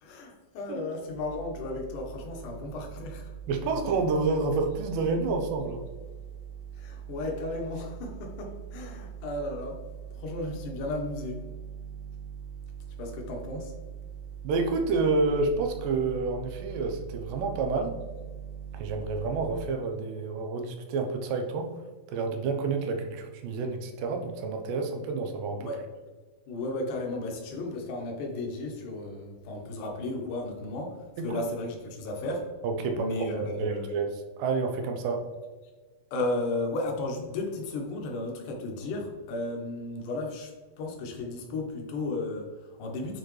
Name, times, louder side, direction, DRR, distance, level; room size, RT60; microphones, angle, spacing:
voice 1, 0.0-3.3 6.8-9.8 10.1-11.4 13.0-13.7 25.6-25.8 26.5-32.5 32.9-33.9 36.1-43.2, left 2 dB, 70° left, 1 dB, 2.4 m, -34 dB
sound 1, 1.1-19.6, right 8 dB, 60° right, 0.8 m, -42 dB
voice 2, 3.5-5.8 14.4-18.0 18.7-21.7 22.1-25.7 31.2-31.4 32.6-35.2, right 4 dB, 75° right, 4 dB, 2.4 m, -29 dB
9.2 x 4.2 x 3.2 m, 1.3 s
omnidirectional pair, 4.1 m